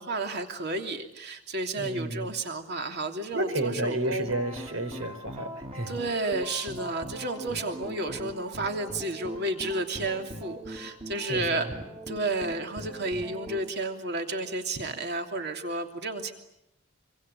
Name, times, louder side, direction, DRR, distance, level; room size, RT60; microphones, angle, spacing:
voice 1, 0.0-4.3 5.9-11.7 12.1-16.3, right 2 dB, 55° right, 5 dB, 2.9 m, -32 dB
voice 2, 1.8-2.3 3.3-5.9 11.3-11.7, right 1 dB, 80° right, 8 dB, 4.3 m, -31 dB
sound 1, 4.3-13.6, right 1 dB, 30° right, 4.0 m, -41 dB
26.0 x 25.5 x 9.0 m, 0.81 s
head